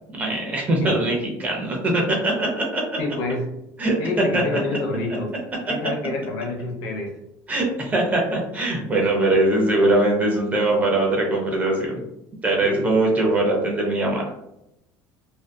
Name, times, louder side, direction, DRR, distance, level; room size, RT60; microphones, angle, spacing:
voice 1, 0.1-2.8 3.8-4.0 4.3-4.4 5.6-5.7 7.5-12.0 12.4-14.2, right 2 dB, 20° right, 0 dB, 0.6 m, -21 dB
voice 2, 3.0-3.5 4.0-5.3 5.7-7.1 12.6-12.9, left 3 dB, 75° left, 1 dB, 0.7 m, -28 dB
2.6 x 2.3 x 2.2 m, 0.84 s
cardioid pair, 155°, 8 cm